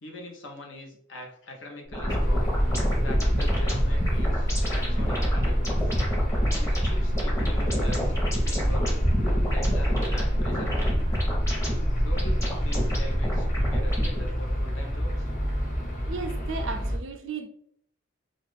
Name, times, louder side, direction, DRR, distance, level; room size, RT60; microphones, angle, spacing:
voice 1, 0.0-2.6 3.0-6.0 6.6-9.0 9.5-11.3 12.0-15.3, left 1 dB, 70° left, 2 dB, 0.8 m, -43 dB
sound 1, 1.9-14.3, equal, 15° left, 0.8 m, -26 dB
sound 2, 2.1-17.0, equal, 40° left, 1.1 m, -29 dB
voice 2, 16.1-17.5, right 4 dB, 75° right, 7 dB, 0.5 m, -34 dB
2.6 x 2.4 x 3.4 m, 0.68 s
head